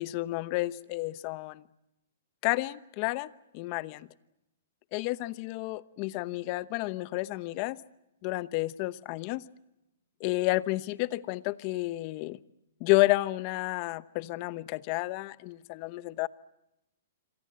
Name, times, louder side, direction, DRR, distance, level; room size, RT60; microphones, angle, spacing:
voice 1, 0.0-1.6 2.4-4.1 4.9-7.8 8.2-9.4 10.2-12.4 12.8-16.3, left 20 dB, 40° left, 17 dB, 0.9 m, -30 dB
27.0 x 25.5 x 7.7 m, 0.90 s
hypercardioid pair, 145°, 0 cm